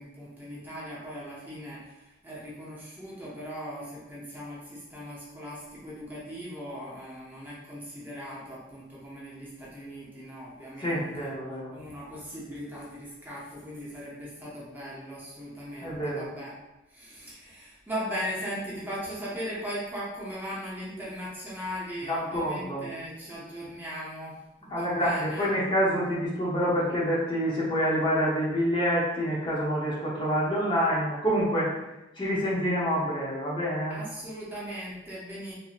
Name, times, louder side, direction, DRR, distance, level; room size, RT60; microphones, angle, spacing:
voice 1, 0.0-11.3 11.7-16.6 16.9-25.5 33.9-35.5, equal, 10° right, -7 dB, 0.7 m, -39 dB
voice 2, 10.8-11.7 15.8-16.2 22.1-22.9 24.7-31.7 32.2-34.0, equal, 25° left, -6 dB, 0.8 m, -27 dB
4.2 x 2.7 x 2.4 m, 0.97 s
head